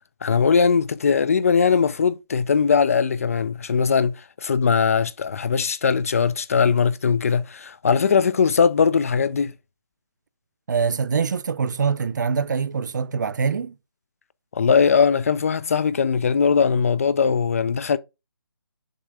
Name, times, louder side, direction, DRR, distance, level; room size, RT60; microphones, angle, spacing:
voice 1, 0.2-9.5 14.5-18.0, left 6 dB, 40° left, 0.4 m, -20 dB
voice 2, 10.7-13.7, right 5 dB, 50° right, 0.5 m, -24 dB
6.5 x 3.2 x 4.9 m
figure-of-eight pair, 155°, 12 cm